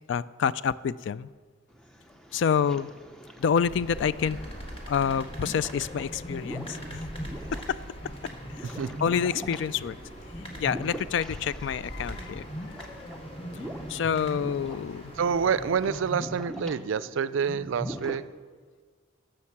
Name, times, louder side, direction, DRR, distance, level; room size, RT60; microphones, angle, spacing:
voice 1, 0.1-1.3 2.3-2.9 3.4-4.4 4.9-7.0 7.5-7.8 8.6-10.0 10.6-12.5 13.9-15.1, left 7 dB, 60° left, 18 dB, 0.3 m, -27 dB
sound 1, 1.7-18.2, equal, 5° left, 0.6 m, -41 dB
sound 2, 3.5-16.5, equal, 30° left, 1.5 m, -43 dB
voice 2, 15.2-18.2, right 6 dB, 70° right, 16 dB, 0.4 m, -27 dB
11.0 x 6.5 x 7.2 m, 1.5 s
head